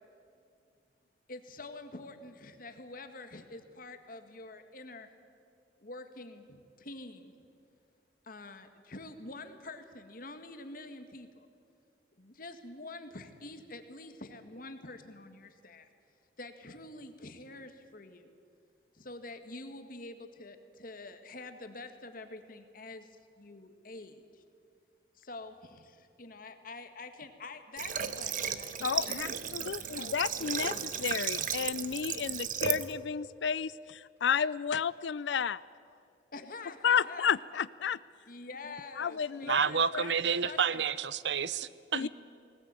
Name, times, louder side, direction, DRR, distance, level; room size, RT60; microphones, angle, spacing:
voice 1, 1.3-5.1 5.8-7.3 8.2-11.5 12.2-15.9 16.4-18.3 18.9-23.1 23.4-24.4 25.2-29.3 29.9-30.6 36.3-37.3 38.3-40.1 40.4-40.8 42.0-42.1, left 2 dB, 50° left, 1.8 m, -46 dB
Water / Water tap faucet, 27.8-32.9, right 8 dB, 50° right, 1.1 m, -35 dB
voice 2, 28.8-29.3 29.5-35.6 36.8-38.0 39.0-39.6 39.9-40.1 41.9-42.1, left 7 dB, 90° left, 0.5 m, -32 dB
voice 3, 39.5-42.1, right 6 dB, 75° right, 0.7 m, -29 dB
20.0 x 19.0 x 9.1 m
head